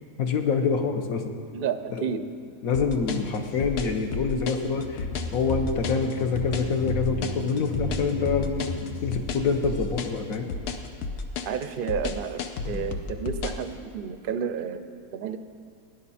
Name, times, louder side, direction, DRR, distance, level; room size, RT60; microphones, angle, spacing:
voice 1, 0.2-1.2 2.0-2.1 2.6-5.0 5.3-8.5 9.0-10.5, left 5 dB, 65° left, 5 dB, 1.4 m, -26 dB
voice 2, 1.5-2.2 11.5-15.4, right 7 dB, 55° right, 9 dB, 0.6 m, -31 dB
sound 1, 2.7-13.7, left 4 dB, 80° left, 1.3 m, -32 dB
sound 2, 4.6-11.0 11.3-11.4, left 1 dB, 45° left, 0.9 m, -35 dB
17.5 x 10.5 x 4.3 m, 2.3 s
omnidirectional pair, 1.6 m